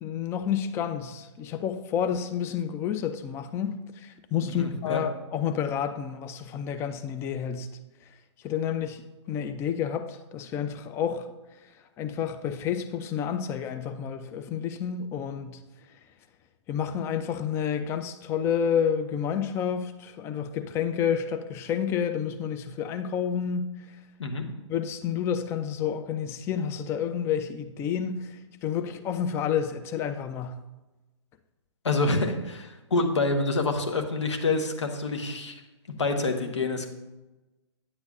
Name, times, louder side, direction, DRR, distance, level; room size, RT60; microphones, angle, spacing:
voice 1, 0.0-7.7 8.4-9.0 9.3-11.3 12.0-15.6 16.7-23.7 24.7-30.6, left 8 dB, 15° left, 9 dB, 0.4 m, -30 dB
voice 2, 4.5-5.0 24.2-24.5 31.8-35.6 35.9-36.9, left 3 dB, 75° left, 5 dB, 1.1 m, -27 dB
9.8 x 7.9 x 2.4 m, 1.1 s
figure-of-eight pair, 125°, 15 cm